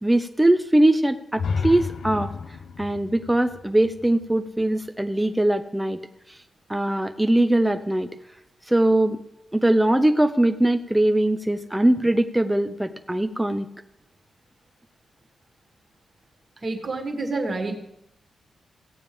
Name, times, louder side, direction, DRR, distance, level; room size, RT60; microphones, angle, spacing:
voice 1, 0.0-2.3 2.8-6.0 6.7-8.1 8.7-9.2 9.5-13.7, right 1 dB, 5° right, 8 dB, 0.5 m, -21 dB
sound 1, 1.3-5.2, left 5 dB, 65° left, 0.7 m, -32 dB
voice 2, 16.6-17.8, right 3 dB, 35° right, 3 dB, 1.7 m, -28 dB
17.0 x 8.9 x 3.4 m, 0.85 s
wide cardioid pair, 155°, 0 cm